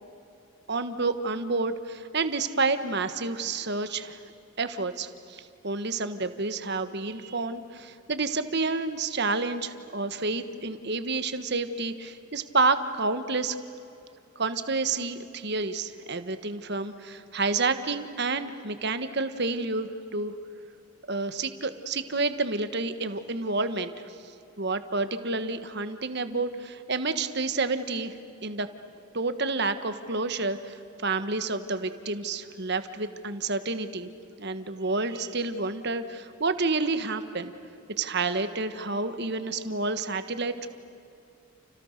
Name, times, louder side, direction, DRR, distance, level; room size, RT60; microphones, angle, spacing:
voice 1, 0.7-4.2 4.6-13.5 14.3-20.3 21.1-24.1 24.6-28.2 28.4-28.7 29.1-34.1 34.4-37.5 38.0-40.7, right 3 dB, 50° right, 10 dB, 1.4 m, -29 dB
30.0 x 30.0 x 6.7 m, 2.7 s
head